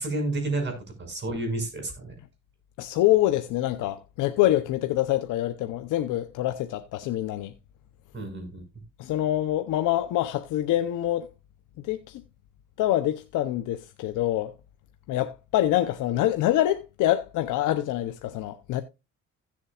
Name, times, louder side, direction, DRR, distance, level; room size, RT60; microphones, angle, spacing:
voice 1, 0.0-2.1 8.1-8.6, right 2 dB, 35° right, 6.3 m, -30 dB
voice 2, 2.8-7.5 9.0-11.3 11.8-12.2 12.8-14.5 15.1-18.8, left 14 dB, 90° left, 0.8 m, -25 dB
16.5 x 7.3 x 2.4 m
cardioid pair, 90°, 30 cm